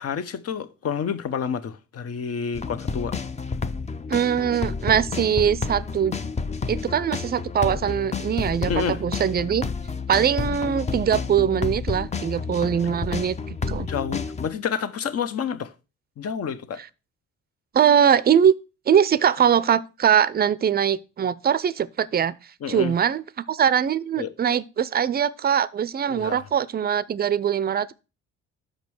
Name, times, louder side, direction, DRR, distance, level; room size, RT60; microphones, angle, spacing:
voice 1, 0.0-3.1 8.7-9.0 13.9-15.7 16.2-16.8 22.6-22.9 24.2-24.3 26.1-26.4, left 7 dB, 50° left, 0.9 m, -29 dB
sound 1, 2.5-14.5, left 4 dB, 20° left, 0.6 m, -30 dB
voice 2, 4.1-6.1 6.7-9.6 10.1-13.9 17.7-18.5 18.9-22.3 22.7-23.2 23.5-27.9, right 8 dB, 30° right, 0.5 m, -22 dB
6.3 x 5.2 x 6.1 m
cardioid pair, 90°, 30 cm